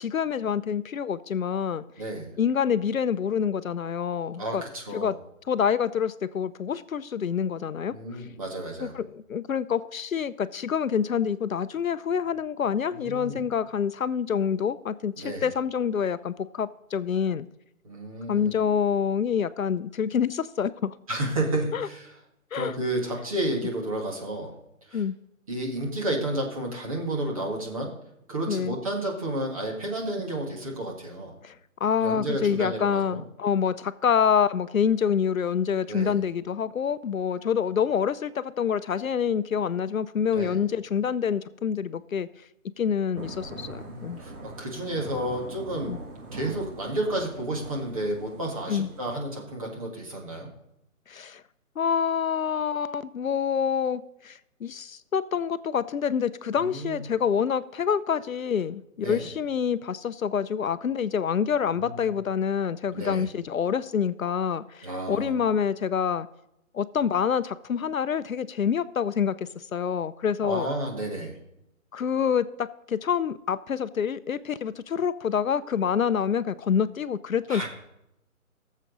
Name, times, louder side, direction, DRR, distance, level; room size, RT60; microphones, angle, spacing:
voice 1, 0.0-1.8 2.4-4.6 4.9-5.1 5.5-8.0 8.8-17.5 18.3-20.9 21.7-21.9 22.5-22.7 24.9-25.1 28.5-28.8 31.4-31.5 31.8-42.3 42.8-44.2 45.9-46.0 48.7-48.9 51.1-51.4 51.8-66.3 66.7-70.7 71.9-77.7, left 7 dB, 70° left, 14 dB, 0.6 m, -27 dB
voice 2, 2.0-2.3 4.4-5.1 7.9-9.0 12.9-13.4 15.2-15.5 17.8-18.6 21.1-22.1 22.5-24.5 24.9-25.0 25.5-27.9 28.3-31.3 32.0-33.2 35.9-36.2 40.3-40.6 43.7-45.9 46.3-50.5 56.6-57.0 59.0-59.3 61.7-62.1 62.9-63.3 64.8-65.4 70.4-71.3 77.5-77.7, right 1 dB, 25° right, -1 dB, 1.9 m, -31 dB
Thunder / Rain, 43.1-49.1, right 2 dB, 80° right, 2.9 m, -42 dB
18.0 x 7.4 x 4.0 m, 0.83 s
hypercardioid pair, 175°, 43 cm